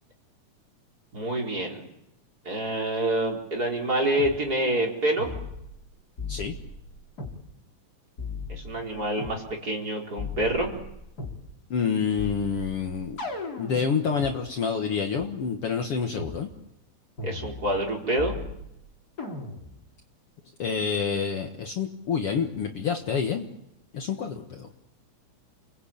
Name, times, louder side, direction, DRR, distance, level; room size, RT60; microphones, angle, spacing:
voice 1, 1.1-1.8 2.4-5.3 8.5-10.7 17.2-18.3, right 1 dB, 30° right, 0 dB, 4.7 m, -27 dB
sound 1, 4.2-4.4 5.2-5.8 6.2-7.4 8.2-9.4 10.2-11.4 12.2-14.3 15.2-15.3 16.2-16.4 17.2-17.9 18.2-18.8 19.2-19.8, left 3 dB, 30° left, 4.0 m, -37 dB
voice 2, 11.7-13.2 13.6-16.5 20.6-23.5 23.9-24.7, left 6 dB, 55° left, 4 dB, 2.2 m, -28 dB
30.0 x 20.5 x 8.7 m, 0.83 s
omnidirectional pair, 3.6 m